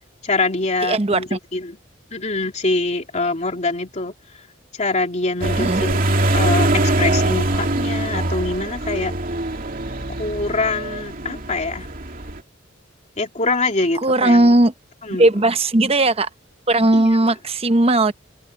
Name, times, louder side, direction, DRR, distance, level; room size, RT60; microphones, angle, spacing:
voice 1, 0.2-1.8 2.1-4.1 4.7-9.1 10.2-11.9 13.2-14.6 15.0-15.5 16.9-17.2, left 3 dB, 35° left, 2.9 m, -24 dB
voice 2, 0.8-1.4 5.6-5.8 14.0-14.7 15.2-16.3 16.7-18.1, right 2 dB, 30° right, 0.9 m, -17 dB
sound 1, 5.4-12.4, right 1 dB, 45° right, 2.7 m, -22 dB
head